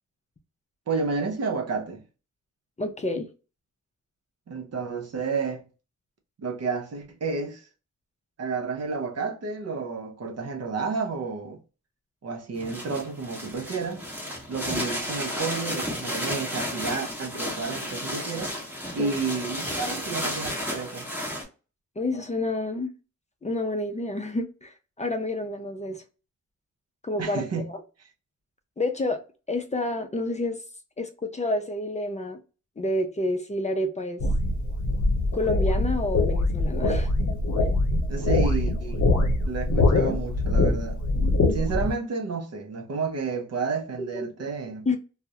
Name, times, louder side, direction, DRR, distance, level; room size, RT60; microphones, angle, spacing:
voice 1, 0.9-2.0 4.5-5.6 6.4-7.7 8.4-11.6 12.2-14.0 14.5-18.6 18.9-21.1 27.2-27.7 38.1-39.0 39.5-44.9, right 4 dB, 55° right, 0.6 m, -31 dB
voice 2, 2.8-3.3 19.0-19.2 22.0-22.9 23.4-26.0 27.0-27.8 28.8-29.2 29.5-30.6 31.0-32.4 32.8-34.2 35.3-37.1 44.1-44.3 44.9-45.0, left 2 dB, 25° left, 0.4 m, -29 dB
sound 1, 12.5-21.4, equal, 5° right, 0.9 m, -32 dB
sound 2, 34.2-41.9, left 2 dB, 75° left, 0.7 m, -23 dB
2.3 x 2.0 x 2.7 m
cardioid pair, 80°, 30 cm